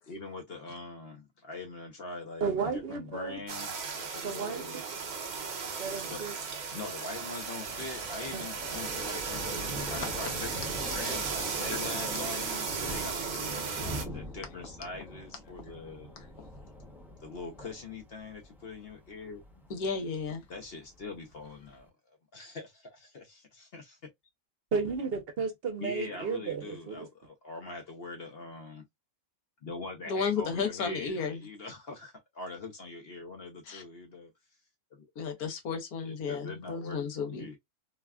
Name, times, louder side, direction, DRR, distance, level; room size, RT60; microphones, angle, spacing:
voice 1, 0.1-4.8 6.1-6.2 6.7-13.8 14.1-16.3 17.2-19.4 20.5-24.0 25.8-28.9 29.6-34.3 34.9-35.1 36.0-37.6, left 3 dB, 55° left, 0.7 m, -43 dB
voice 2, 2.4-3.4 4.2-4.7 5.8-6.3 8.3-8.4 24.7-27.1, right 5 dB, 50° right, 0.8 m, -33 dB
sound 1, 3.5-14.0, right 5 dB, 65° right, 0.4 m, -35 dB
Thunder, 5.0-21.8, left 1 dB, 5° right, 0.4 m, -45 dB
voice 3, 19.7-20.4 30.1-31.4 33.7-33.8 35.2-37.6, left 5 dB, 80° left, 1.3 m, -33 dB
3.3 x 2.3 x 2.2 m
omnidirectional pair, 1.5 m